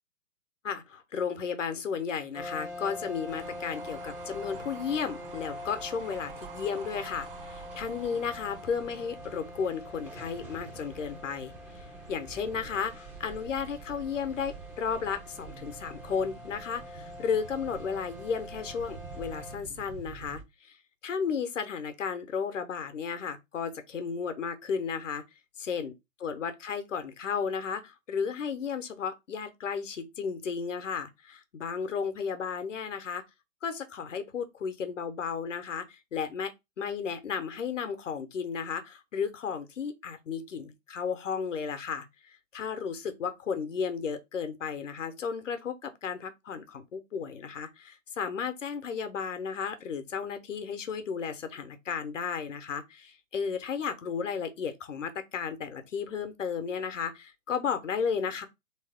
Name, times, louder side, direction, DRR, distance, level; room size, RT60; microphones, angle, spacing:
voice 1, 0.6-20.8 21.0-25.2 25.6-25.9 26.2-33.2 33.6-58.5, left 6 dB, 70° left, 1.0 m, -34 dB
sound 1, 2.3-19.6, left 1 dB, 5° right, 0.5 m, -44 dB
sound 2, 3.3-20.4, right 7 dB, 45° right, 0.8 m, -48 dB
3.5 x 3.1 x 3.5 m
figure-of-eight pair, 120°, 39 cm